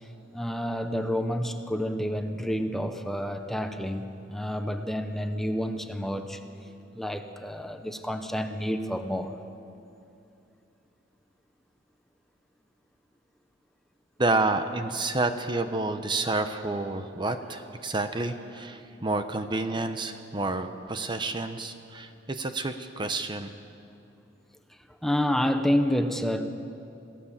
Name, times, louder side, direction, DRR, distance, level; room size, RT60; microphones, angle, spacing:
voice 1, 0.3-6.4 6.9-9.4 25.0-26.5, equal, ahead, 6 dB, 0.9 m, -29 dB
voice 2, 14.2-23.5, right 2 dB, 25° right, 8 dB, 0.9 m, -29 dB
27.0 x 16.0 x 7.3 m, 2.6 s
head